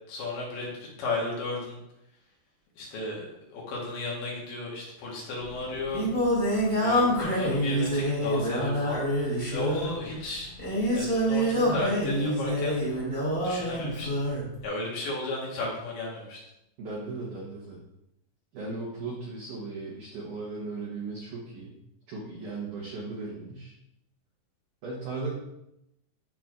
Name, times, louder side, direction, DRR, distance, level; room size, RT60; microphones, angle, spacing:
voice 1, 0.1-0.7 1.0-1.8 2.8-3.3 3.5-6.1 6.8-10.5 10.9-12.8 13.4-14.1 14.6-16.4, left 2 dB, 65° left, -3 dB, 3.1 m, -34 dB
Singing, 5.4-14.5, equal, 25° left, 1.3 m, -26 dB
voice 2, 16.8-17.8 18.5-21.7 22.1-23.7 24.8-25.3, right 3 dB, 75° right, -4 dB, 1.8 m, -37 dB
12.0 x 4.2 x 2.5 m, 0.84 s
omnidirectional pair, 5.3 m